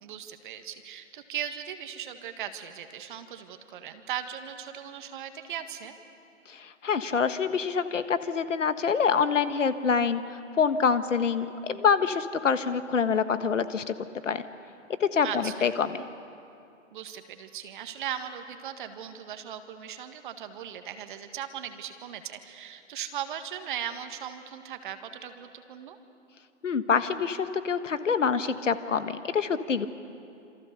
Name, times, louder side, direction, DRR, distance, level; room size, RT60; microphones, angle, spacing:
voice 1, 0.0-6.0 15.2-15.7 16.9-26.0, right 9 dB, 40° right, 8 dB, 1.8 m, -38 dB
voice 2, 6.5-14.4 15.0-16.0 26.6-29.9, left 6 dB, 70° left, 11 dB, 1.4 m, -26 dB
27.5 x 26.0 x 6.8 m, 2.6 s
figure-of-eight pair, 135°, 39 cm